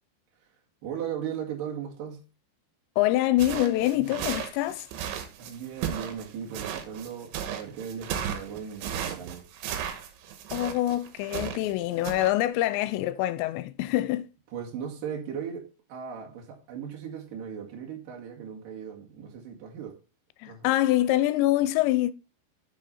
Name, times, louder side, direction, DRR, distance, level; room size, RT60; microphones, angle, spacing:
voice 1, 0.8-2.2 5.4-9.5 14.5-20.0 20.5-20.7, right 8 dB, 55° right, 3.2 m, -37 dB
voice 2, 3.0-4.9 10.5-14.3 20.4-22.1, left 15 dB, 85° left, 2.7 m, -25 dB
sound 1, 3.4-11.7 12.1-12.3, right 9 dB, 90° right, 3.4 m, -35 dB
8.4 x 6.6 x 4.2 m
omnidirectional pair, 5.2 m